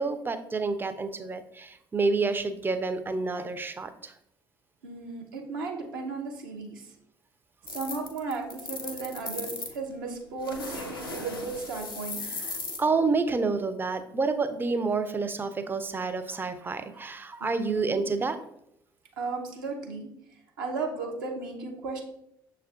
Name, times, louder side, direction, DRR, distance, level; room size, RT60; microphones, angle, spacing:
voice 1, 0.0-4.1 12.4-18.4, right 4 dB, 15° right, 10 dB, 0.4 m, -29 dB
voice 2, 4.8-6.9 7.7-12.2 17.4-18.1 19.2-20.1 20.6-22.0, right 4 dB, 70° right, 1 dB, 0.6 m, -35 dB
sound 1, 7.7-9.8 10.4-12.8, left 3 dB, 85° left, 0.4 m, -37 dB
6.4 x 2.2 x 2.4 m, 0.77 s
figure-of-eight pair, 50°, 12 cm